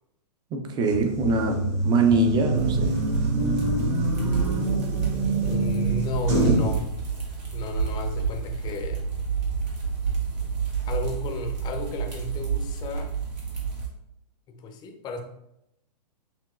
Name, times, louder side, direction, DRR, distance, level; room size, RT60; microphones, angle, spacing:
voice 1, 0.5-3.0, right 3 dB, 20° right, 5 dB, 0.6 m, -23 dB
sound 1, 0.9-6.7, right 2 dB, 50° right, 1.7 m, -25 dB
sound 2, 2.5-13.9, right 6 dB, 85° right, 1.7 m, -29 dB
voice 2, 5.4-6.9 7.5-9.1 10.8-13.1 14.5-15.2, left 4 dB, 20° left, 4 dB, 0.6 m, -33 dB
7.0 x 2.9 x 2.4 m, 0.83 s
hypercardioid pair, 125°, 21 cm